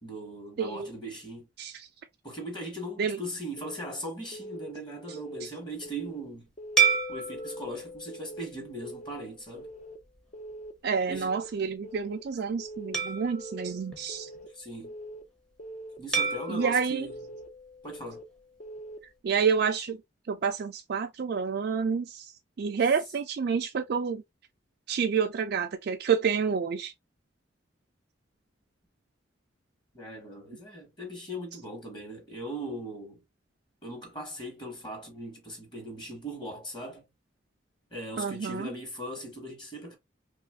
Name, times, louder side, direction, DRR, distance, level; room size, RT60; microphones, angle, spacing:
voice 1, 0.0-1.5 2.2-6.5 7.1-9.7 11.1-11.4 14.5-14.9 16.0-17.4 17.8-18.2 29.9-33.2 33.8-37.0 37.9-40.0, right 1 dB, 25° left, 1.2 m, -39 dB
Keyboard (musical) / Alarm, 3.6-3.9 4.3-4.7 5.1-5.4 5.8-6.2 6.6-7.0 7.3-7.7 8.1-8.5 8.8-9.2 9.6-10.0 10.3-10.7 11.1-11.5 11.8-12.2 12.6-13.0 13.3-13.7 14.1-14.5 14.8-15.2 15.6-16.0 16.3-16.7 17.1-17.5 17.8-18.2 18.6-19.0 19.3-19.7, right 1 dB, 40° left, 0.6 m, -43 dB
sound 1, 6.8-9.4 10.0-10.2 12.9-14.7 16.1-18.4, right 6 dB, 5° left, 0.7 m, -32 dB
voice 2, 10.8-14.3 16.5-17.1 19.2-20.0 20.3-22.3 22.6-24.2 24.9-26.9 38.2-38.7, right 6 dB, 55° right, 0.3 m, -28 dB
3.0 x 2.4 x 3.2 m
head